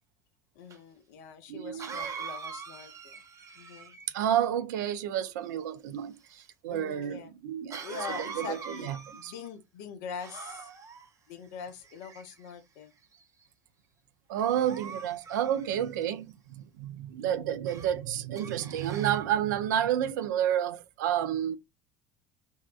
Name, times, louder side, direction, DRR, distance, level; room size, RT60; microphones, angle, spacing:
voice 1, 0.5-3.2 3.5-4.0 6.7-7.3 7.8-10.7 11.3-12.9, left 6 dB, 65° left, 0.6 m, -43 dB
Cough, 0.7-0.8 1.8-4.2 7.7-9.5 10.2-11.1 11.8-12.5 13.1-13.4 14.4-16.0 17.7-17.9 18.4-19.2, right 6 dB, 30° right, 0.6 m, -43 dB
voice 2, 1.5-1.9 4.1-6.1 6.6-7.9 8.4-9.0 9.2-9.3 14.3-21.6, right 10 dB, 70° right, 0.4 m, -30 dB
2.7 x 2.1 x 2.3 m
figure-of-eight pair, 70°, 10 cm